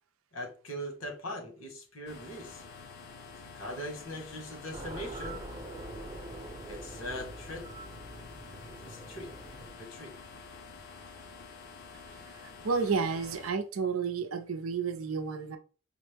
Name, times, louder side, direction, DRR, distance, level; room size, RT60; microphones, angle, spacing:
voice 1, 0.3-2.6 3.5-5.4 6.6-7.7 8.6-9.3 9.8-10.1, equal, 85° left, 1.4 m, -41 dB
sound 1, 2.1-13.5, left 5 dB, 50° left, 0.5 m, -49 dB
sound 2, 4.7-9.7, right 2 dB, 30° right, 0.7 m, -44 dB
voice 2, 12.6-15.6, right 5 dB, 90° right, 0.5 m, -31 dB
5.1 x 2.1 x 3.3 m
head